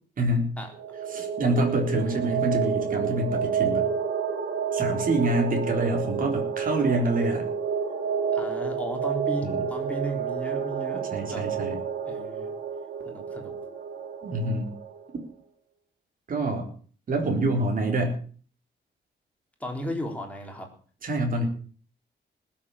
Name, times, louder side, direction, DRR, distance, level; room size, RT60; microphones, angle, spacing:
voice 1, 0.2-0.5 1.1-3.9 4.7-7.5 9.4-9.6 11.1-11.8 14.2-14.7 16.3-16.7 17.1-18.2 21.0-21.5, right 1 dB, 50° right, 2 dB, 3.9 m, -26 dB
sound 1, 0.7-15.0, right 7 dB, 85° right, 3.1 m, -30 dB
voice 2, 8.3-11.5 12.1-12.5 13.1-13.6 19.6-20.7, right 1 dB, 5° left, 2 dB, 3.8 m, -35 dB
19.5 x 7.6 x 7.2 m, 0.44 s
wide cardioid pair, 150°, 18 cm